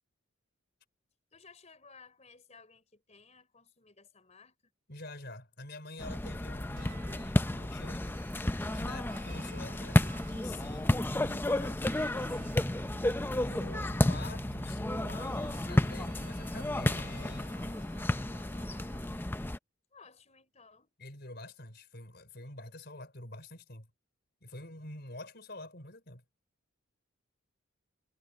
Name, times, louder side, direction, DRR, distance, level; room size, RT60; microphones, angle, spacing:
voice 1, 1.3-4.5 13.6-14.1 19.9-20.9, left 4 dB, 35° left, 4.3 m, -57 dB
voice 2, 4.9-8.2 8.7-11.9 13.4-17.9 21.0-23.9 24.4-26.2, left 2 dB, 55° left, 5.3 m, -47 dB
sound 1, 6.0-19.6, left 1 dB, 10° left, 0.4 m, -31 dB
sound 2, 6.8-19.3, right 1 dB, 45° right, 5.0 m, -49 dB
head